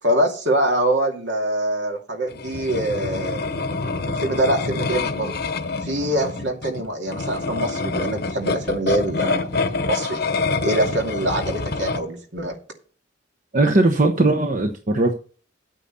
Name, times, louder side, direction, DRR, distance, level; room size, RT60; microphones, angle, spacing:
voice 1, 0.0-3.4 4.2-5.4 5.8-9.4 9.8-10.2 10.6-12.6, right 1 dB, 70° right, 2.5 m, -24 dB
sound 1, 2.3-12.0, left 3 dB, 60° left, 1.0 m, -26 dB
voice 2, 13.5-15.1, right 2 dB, 45° right, 1.0 m, -18 dB
9.4 x 9.0 x 4.1 m
head